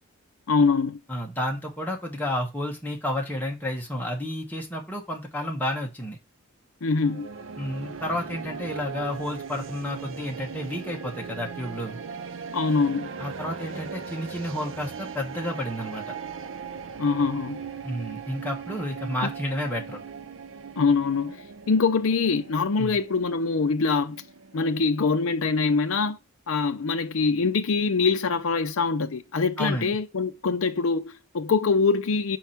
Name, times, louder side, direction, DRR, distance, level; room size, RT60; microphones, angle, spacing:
voice 1, 0.5-1.0 6.8-7.3 12.5-13.1 17.0-17.6 20.8-24.2 24.5-26.2 26.5-32.4, left 4 dB, 65° left, 0.5 m, -24 dB
voice 2, 1.1-6.2 7.6-12.0 13.2-16.1 17.8-20.0 22.8-23.0 29.6-30.0, left 1 dB, 10° left, 1.3 m, -31 dB
sound 1, 7.0-25.2, right 6 dB, 60° right, 0.5 m, -39 dB
4.8 x 4.5 x 5.8 m
head